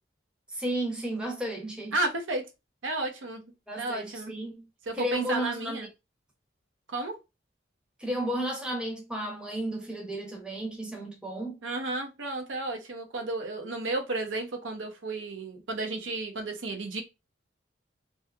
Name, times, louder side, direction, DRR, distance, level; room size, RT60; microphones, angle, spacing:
voice 1, 0.5-1.9 3.7-4.6 4.9-5.8 8.0-11.6, right 1 dB, 5° right, 0.6 m, -33 dB
voice 2, 1.9-2.4 2.8-3.4 3.8-4.3 4.9-5.9 6.9-7.2 11.6-17.0, right 2 dB, 90° right, 0.7 m, -32 dB
2.7 x 2.3 x 2.3 m
head